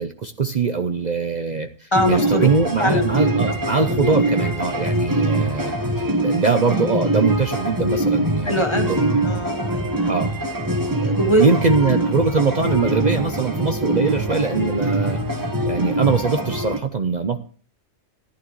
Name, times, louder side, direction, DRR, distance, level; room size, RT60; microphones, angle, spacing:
voice 1, 0.0-5.7 6.2-9.2 10.0-10.3 11.4-15.2 15.7-17.4, right 4 dB, 45° right, 7 dB, 0.8 m, -22 dB
voice 2, 1.9-2.5 2.8-3.1 8.4-8.9 9.2-10.2 10.9-11.4, equal, 25° left, 5 dB, 1.4 m, -22 dB
sound 1, 1.9-16.8, right 1 dB, 15° right, 1.2 m, -23 dB
14.5 x 11.5 x 3.2 m, 0.40 s
omnidirectional pair, 1.2 m